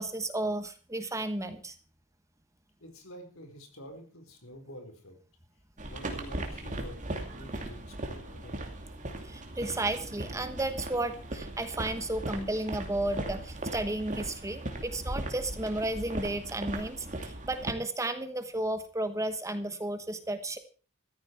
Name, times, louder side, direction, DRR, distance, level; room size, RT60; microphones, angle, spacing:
voice 1, 0.0-1.7 9.2-20.6, right 2 dB, 15° right, 10 dB, 1.2 m, -33 dB
voice 2, 2.8-5.2 5.9-8.6, equal, 70° left, 5 dB, 4.4 m, -48 dB
sound 1, 5.8-17.7, right 1 dB, 35° right, 2.6 m, -38 dB
14.5 x 13.5 x 4.6 m, 0.38 s
head